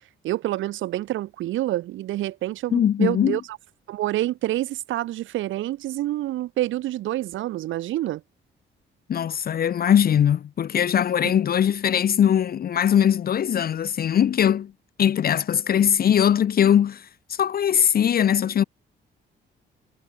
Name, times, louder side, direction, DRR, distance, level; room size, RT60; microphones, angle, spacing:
voice 1, 0.2-3.6 3.9-8.2 11.2-11.3, right 15 dB, 75° right, 0.8 m, -27 dB
voice 2, 2.7-3.4 9.1-14.7 15.0-18.6, left 9 dB, 50° left, 0.7 m, -21 dB
cardioid pair, 90°, 20 cm